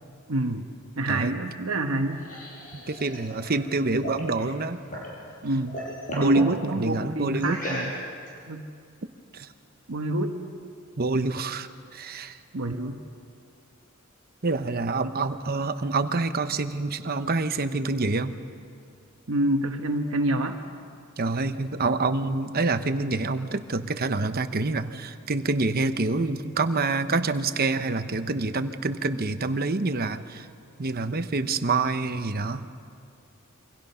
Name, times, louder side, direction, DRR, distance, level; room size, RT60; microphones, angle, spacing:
voice 1, 0.3-0.7 1.0-2.2 5.4-5.8 6.1-7.9 8.5-8.7 9.9-10.4 11.1-11.3 12.5-13.0 19.3-20.6 27.8-27.9, right 1 dB, 80° right, 3 dB, 1.2 m, -27 dB
sound 1, 1.8-5.2 5.5-6.5 7.4-8.3, equal, 40° left, 7.3 m, -36 dB
voice 2, 2.7-4.8 6.1-7.6 9.3-9.5 11.0-12.4 14.4-18.4 21.2-30.5 30.8-32.6, right 3 dB, 50° right, 9 dB, 1.0 m, -27 dB
28.0 x 24.5 x 5.7 m, 2.4 s
head